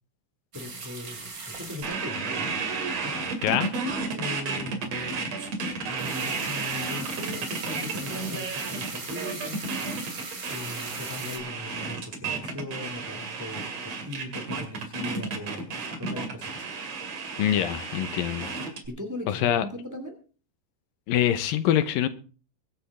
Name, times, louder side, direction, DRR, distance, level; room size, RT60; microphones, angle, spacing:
voice 1, 0.5-2.5 2.9-3.5 3.8-5.3 5.9-9.6 9.9-10.1 10.5-16.7 18.9-20.2, left 1 dB, 5° right, 1.6 m, -39 dB
sound 1, 0.5-3.0 5.8-11.4, right 3 dB, 30° right, 2.4 m, -39 dB
sound 2, 1.8-18.9, right 4 dB, 50° right, 3.3 m, -32 dB
voice 2, 17.4-18.6 19.3-19.7 21.1-22.1, left 11 dB, 85° left, 2.8 m, -24 dB
23.0 x 8.6 x 3.6 m
omnidirectional pair, 4.0 m